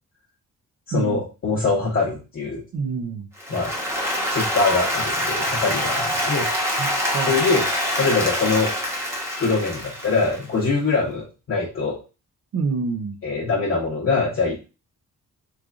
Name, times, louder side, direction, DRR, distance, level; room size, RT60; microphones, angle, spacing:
voice 1, 0.9-2.6 3.5-3.7 4.3-6.5 7.3-7.7 8.0-8.7 9.4-12.0 13.2-14.7, left 4 dB, 45° left, -5 dB, 0.8 m, -23 dB
voice 2, 2.7-3.3 6.8-7.4 12.5-13.1, right 4 dB, 55° right, 7 dB, 0.6 m, -27 dB
Applause, 3.4-10.6, equal, 10° right, 0.9 m, -25 dB
3.6 x 3.3 x 2.4 m, 0.30 s
wide cardioid pair, 170°, 31 cm